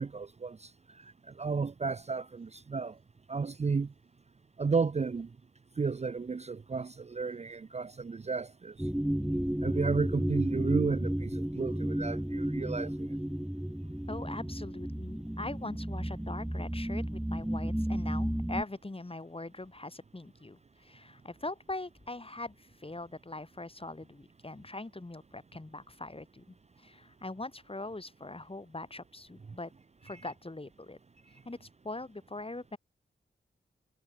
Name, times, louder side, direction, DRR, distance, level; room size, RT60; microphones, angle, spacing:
voice 1, 0.0-3.0 3.3-3.9 4.6-5.3 5.8-8.9 9.6-13.2, right 4 dB, 35° right, 0.5 m, -33 dB
sound 1, 8.8-18.6, right 1 dB, 5° right, 1.1 m, -33 dB
voice 2, 14.1-29.7 30.0-31.0 31.4-32.8, left 2 dB, 25° left, 3.4 m, -42 dB
cardioid pair, 55°, 20 cm